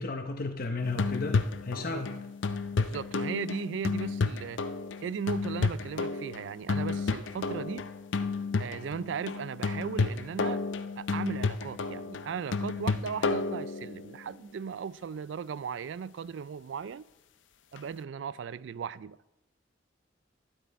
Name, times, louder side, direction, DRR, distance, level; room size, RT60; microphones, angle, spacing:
voice 1, 0.0-2.2, left 3 dB, 50° left, 0.8 m, -34 dB
sound 1, 0.8-14.2 17.8-17.9, left 4 dB, 85° left, 0.5 m, -31 dB
voice 2, 2.7-4.6 5.0-7.9 8.6-10.6 11.0-17.1 17.7-19.2, right 6 dB, 75° right, 0.4 m, -37 dB
12.0 x 10.5 x 4.2 m
head